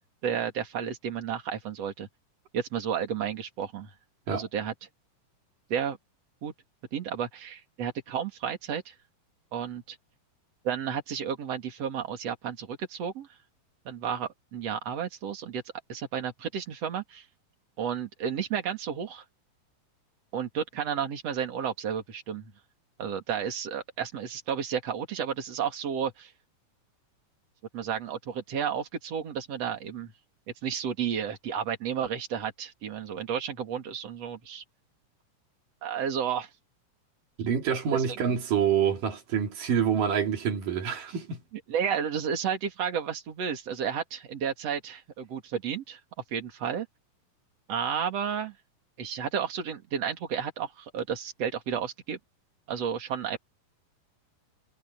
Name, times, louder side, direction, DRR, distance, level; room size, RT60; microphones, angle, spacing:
voice 1, 0.2-2.1 2.5-3.9 4.3-4.7 5.7-6.0 6.4-6.5 6.9-9.0 9.5-10.0 10.6-13.3 13.9-15.6 15.9-17.3 17.8-19.2 20.3-22.5 23.0-26.3 27.7-30.1 30.6-34.6 35.8-36.5 37.9-38.4 41.7-46.0 46.3-46.9 47.7-48.6 49.0-52.2 52.7-53.4, right 8 dB, 45° right, 3.6 m, -32 dB
voice 2, 37.4-41.4, right 8 dB, 65° right, 4.8 m, -27 dB
omnidirectional pair, 4.1 m